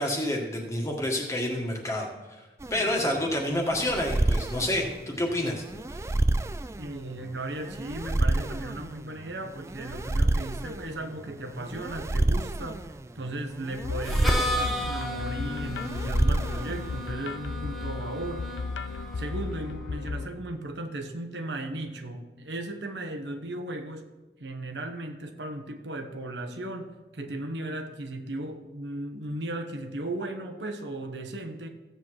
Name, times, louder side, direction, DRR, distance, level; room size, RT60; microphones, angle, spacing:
voice 1, 0.0-5.6, left 1 dB, 15° left, 0 dB, 1.6 m, -29 dB
sound 1, 2.6-17.1, right 2 dB, 15° right, 0.3 m, -29 dB
voice 2, 6.8-12.9 13.1-18.5 19.2-24.1 24.4-31.7, right 1 dB, 90° right, 5 dB, 1.2 m, -36 dB
sound 2, 13.8-20.3, left 4 dB, 90° left, 0.5 m, -35 dB
Harmonica, 14.0-19.8, left 1 dB, ahead, 1.2 m, -35 dB
15.0 x 8.0 x 4.8 m, 1.1 s
head